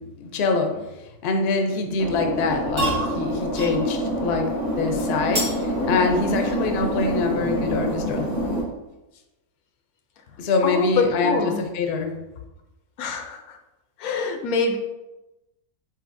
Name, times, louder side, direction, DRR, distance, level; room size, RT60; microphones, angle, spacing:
voice 1, 0.2-8.3 10.4-12.2, left 4 dB, 55° left, 4 dB, 0.7 m, -25 dB
sound 1, 2.0-8.6, equal, 45° right, 1.9 m, -26 dB
sound 2, 2.4-8.8, right 1 dB, 70° right, 2.3 m, -34 dB
voice 2, 10.6-11.6 13.0-13.6 14.0-14.8, left 4 dB, 80° left, 5 dB, 1.0 m, -25 dB
7.6 x 2.7 x 2.5 m, 0.99 s
omnidirectional pair, 1.5 m